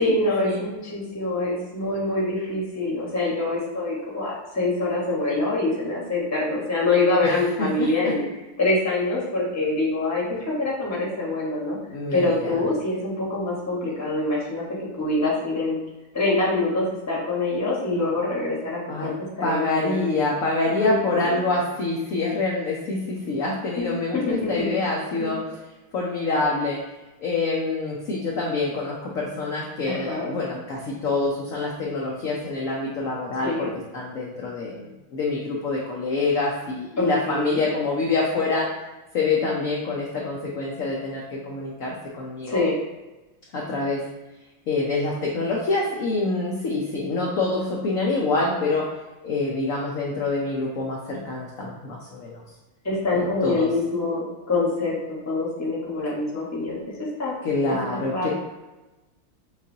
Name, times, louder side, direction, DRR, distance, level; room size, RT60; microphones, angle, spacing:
voice 1, 0.0-8.2 8.6-11.8 12.1-15.8 16.1-19.1 19.4-20.0 20.8-21.5 23.8-24.7 25.2-25.3 29.8-30.3 33.4-33.7 37.0-37.6 42.5-42.8 52.8-56.8 57.2-57.3 57.7-58.3, left 2 dB, 10° left, -5 dB, 0.8 m, -25 dB
voice 2, 7.2-8.1 11.9-12.6 18.9-19.2 19.4-25.4 25.9-26.8 27.2-33.7 33.9-38.7 39.1-42.6 43.5-44.0 44.7-48.9 49.2-52.4 53.1-53.7 57.4-58.3, left 3 dB, 70° left, -3 dB, 0.8 m, -26 dB
6.4 x 2.5 x 2.7 m, 1.1 s
omnidirectional pair, 2.2 m